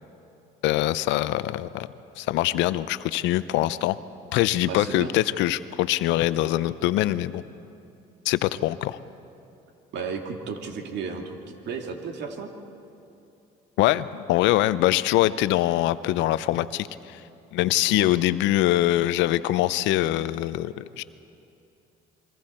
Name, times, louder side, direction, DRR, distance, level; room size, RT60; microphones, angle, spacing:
voice 1, 0.6-1.9 2.2-4.0 4.3-7.4 8.3-9.0 13.8-17.2 17.5-21.0, left 15 dB, 75° left, 15 dB, 0.6 m, -23 dB
voice 2, 4.7-5.1 9.9-11.4 11.6-12.5 17.9-18.1, right 5 dB, 65° right, 3 dB, 2.3 m, -34 dB
27.0 x 22.5 x 4.4 m, 2.8 s
supercardioid pair, 80°, 19 cm